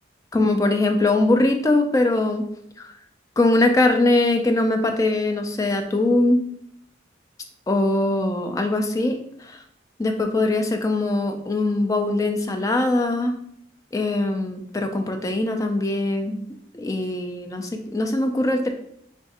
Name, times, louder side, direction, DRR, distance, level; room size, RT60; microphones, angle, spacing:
voice 1, 0.3-2.5 2.8-2.9 3.4-6.5 7.7-9.6 10.0-13.4 13.9-16.4 16.7-18.7, left 2 dB, 20° left, 5 dB, 0.3 m, -21 dB
3.4 x 2.4 x 4.1 m, 0.72 s
head